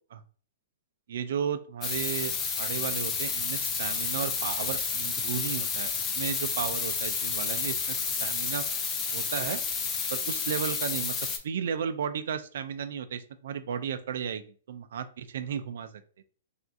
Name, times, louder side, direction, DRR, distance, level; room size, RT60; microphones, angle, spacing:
voice 1, 1.1-2.3 2.6-8.6 9.1-9.6 10.1-11.1 11.4-16.0, right 8 dB, 65° right, 10 dB, 0.3 m, -34 dB
sound 1, 1.8-11.4, left 5 dB, 15° left, 0.3 m, -30 dB
3.4 x 2.4 x 2.6 m, 0.42 s
hypercardioid pair, 165°, 0 cm